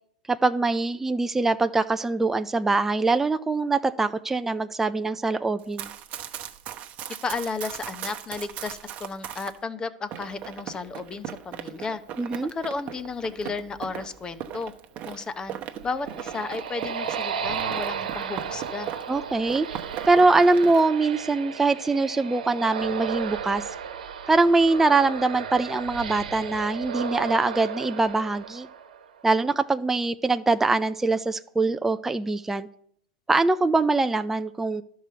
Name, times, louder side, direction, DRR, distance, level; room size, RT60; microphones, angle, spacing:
voice 1, 0.3-5.9 12.2-12.5 19.1-19.7 20.1-23.6 24.3-28.7 29.2-32.7 33.3-34.8, right 3 dB, 10° right, 9 dB, 0.4 m, -23 dB
Run, 5.6-9.6 10.1-19.2 19.5-20.9, right 10 dB, 35° right, 1.0 m, -38 dB
voice 2, 7.2-12.0 12.5-14.7 15.1-15.6 15.8-18.9, left 4 dB, 20° left, 13 dB, 0.8 m, -33 dB
sound 1, 15.7-29.2, right 7 dB, 90° right, 1.1 m, -34 dB
11.5 x 4.8 x 6.8 m, 0.68 s
hypercardioid pair, 120°, 4 cm